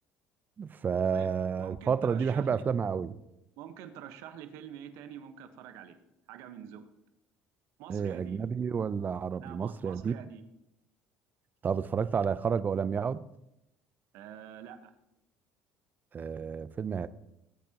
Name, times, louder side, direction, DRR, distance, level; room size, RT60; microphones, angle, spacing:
voice 1, 0.6-3.2 7.9-10.1 11.6-13.2 16.1-17.1, right 6 dB, 35° right, 15 dB, 0.6 m, -30 dB
voice 2, 1.6-2.6 3.6-6.0 6.3-6.8 7.8-8.4 9.4-10.4 14.1-14.9, right 9 dB, 75° right, 8 dB, 1.2 m, -46 dB
20.0 x 8.4 x 3.0 m, 0.85 s
supercardioid pair, 80°, 5 cm